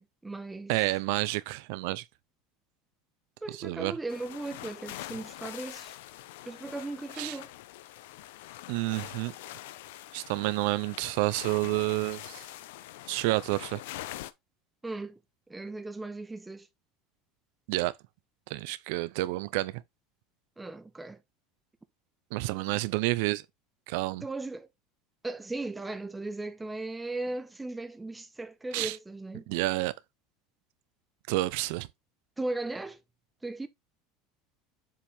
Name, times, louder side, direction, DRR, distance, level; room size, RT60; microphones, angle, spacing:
voice 1, 0.0-0.7 3.4-6.0 6.5-7.5 14.8-15.2 15.5-16.7 20.6-21.2 24.2-24.7 25.2-29.5 32.4-33.0 33.4-33.7, right 2 dB, 10° right, 0.7 m, -37 dB
voice 2, 0.7-2.0 3.5-4.0 7.2-7.4 8.7-9.3 10.1-12.5 13.1-13.8 17.7-17.9 18.5-19.8 22.3-23.4 23.9-24.2 28.7-29.0 29.5-29.9 31.3-31.9, right 19 dB, 70° right, 0.5 m, -29 dB
sound 1, 4.1-14.3, left 15 dB, 85° left, 0.7 m, -44 dB
7.3 x 4.4 x 3.4 m
cardioid pair, 160°, 0 cm